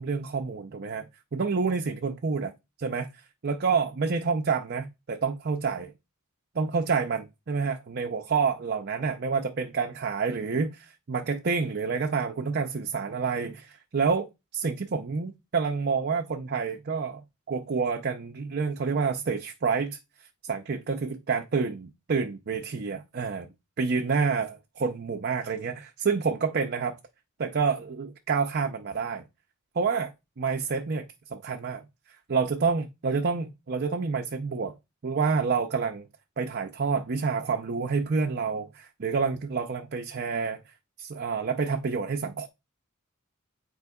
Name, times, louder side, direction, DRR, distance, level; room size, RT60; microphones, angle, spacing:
voice 1, 0.0-2.5 2.8-3.1 3.4-5.9 6.5-20.0 20.4-23.5 23.8-27.0 27.4-29.2 29.8-31.9 32.3-34.7 35.0-36.0 36.4-40.6 41.0-42.5, right 5 dB, 45° right, 0.6 m, -28 dB
9.3 x 4.5 x 2.3 m
head